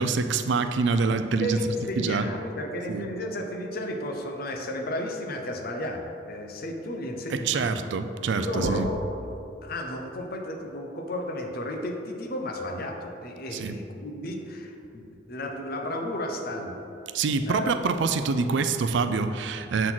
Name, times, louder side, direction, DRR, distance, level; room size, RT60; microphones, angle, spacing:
voice 1, 0.0-1.6 2.0-2.3 2.9-3.1 7.3-8.9 13.5-13.8 17.1-19.9, right 4 dB, 65° right, 9 dB, 0.4 m, -26 dB
voice 2, 1.1-7.9 8.4-9.3 9.6-16.9 17.5-17.7, left 1 dB, 50° left, 3 dB, 0.7 m, -33 dB
7.5 x 4.0 x 6.0 m, 2.8 s
head